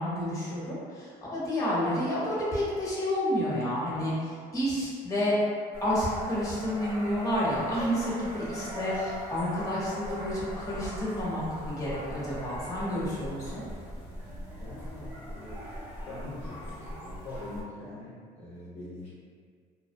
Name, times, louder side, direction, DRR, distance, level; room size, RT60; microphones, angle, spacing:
voice 1, 0.0-5.4 5.8-13.6, equal, 20° left, -8 dB, 0.9 m, -30 dB
sound 1, 5.7-17.6, equal, 10° right, 0.7 m, -40 dB
voice 2, 14.0-15.7 16.1-19.1, left 2 dB, 40° left, -8 dB, 0.5 m, -43 dB
2.5 x 2.1 x 2.5 m, 2.1 s
cardioid pair, 110°, 17 cm